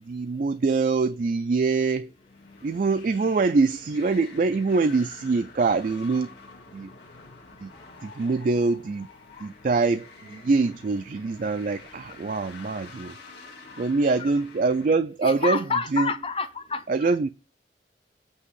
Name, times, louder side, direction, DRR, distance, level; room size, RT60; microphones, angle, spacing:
voice 1, 0.1-2.1 2.6-6.3 6.7-6.9 7.6-7.7 8.0-9.1 9.4-10.0 10.3-13.1 13.8-15.6 15.9-16.1 16.9-17.3, right 4 dB, 50° right, 0.3 m, -24 dB
sound 1, 2.1-15.0, left 4 dB, 75° left, 1.8 m, -48 dB
voice 2, 15.2-17.1, left 4 dB, 30° left, 0.7 m, -30 dB
8.3 x 2.9 x 6.3 m
head